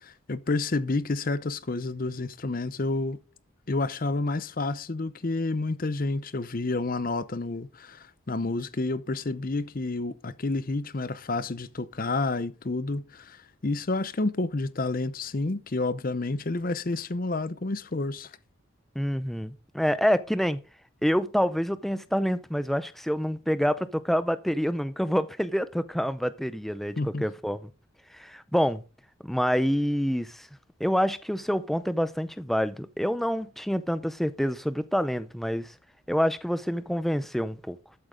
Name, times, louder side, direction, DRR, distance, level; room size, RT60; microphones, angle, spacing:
voice 1, 0.0-3.2 3.7-18.3 27.0-27.3, left 2 dB, 40° left, 0.6 m, -29 dB
voice 2, 19.0-20.6 21.0-27.7 28.1-28.8 29.2-30.5 30.8-35.7 36.1-37.8, equal, ahead, 0.5 m, -27 dB
13.0 x 8.0 x 3.8 m
head